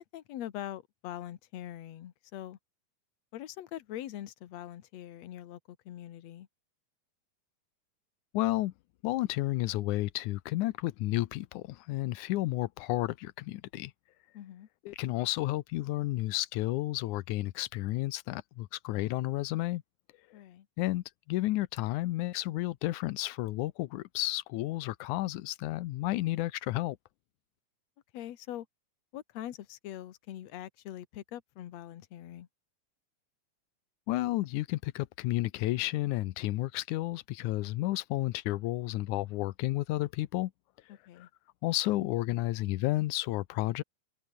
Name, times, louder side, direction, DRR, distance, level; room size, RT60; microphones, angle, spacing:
voice 1, 0.0-2.6 3.3-6.5 14.3-14.7 20.3-20.7 28.1-28.7 29.1-32.5 40.9-41.3, left 12 dB, 60° left, 1.9 m, -43 dB
voice 2, 8.3-8.7 9.0-13.9 14.8-19.8 20.8-27.0 34.1-40.5 41.6-43.8, left 17 dB, 90° left, 1.7 m, -32 dB
omnidirectional pair, 4.4 m